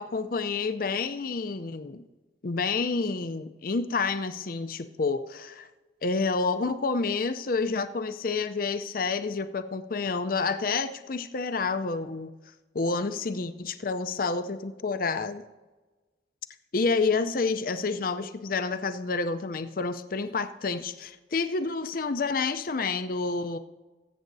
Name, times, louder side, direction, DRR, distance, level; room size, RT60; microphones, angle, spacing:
voice 1, 0.0-2.1 2.4-5.7 6.0-12.3 12.7-15.4 16.7-23.6, left 4 dB, 50° left, 11 dB, 0.5 m, -29 dB
20.0 x 8.5 x 2.7 m, 1.2 s
head